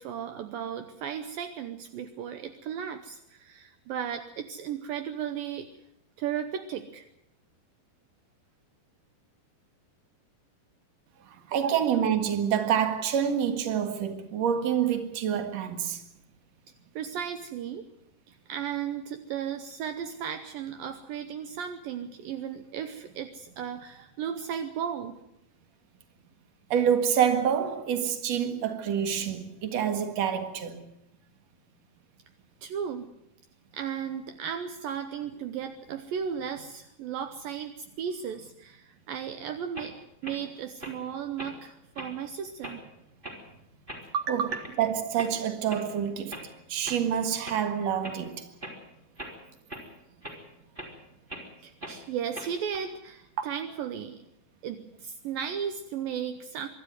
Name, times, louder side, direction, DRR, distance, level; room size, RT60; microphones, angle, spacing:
voice 1, 0.0-5.7 6.2-7.1 11.5-11.9 17.0-17.9 18.3-25.2 32.6-33.1 33.7-39.9 40.2-42.8 44.1-44.7 51.6-54.2 54.6-56.7, right 8 dB, 75° right, 2.5 m, -35 dB
voice 2, 11.2-16.0 26.7-30.8 44.3-44.4 44.8-46.4 46.7-48.5, right 8 dB, 50° right, 2.5 m, -27 dB
sound 1, 39.7-39.9 40.2-40.4 40.8-40.9 41.4-41.6 42.0-42.1 42.6-42.8 43.2-43.4 43.9-44.0 44.5-44.8 45.2-45.3 45.7-45.8 46.3-46.4 46.8-47.0 47.4-47.6 48.0-48.2 48.6-48.8 49.2-49.3 49.7-49.8 50.2-50.4 50.8-50.9 51.3-51.4 51.8-52.0 52.3-52.8, right 1 dB, 15° right, 4.0 m, -40 dB
24.5 x 12.5 x 9.4 m
omnidirectional pair, 4.4 m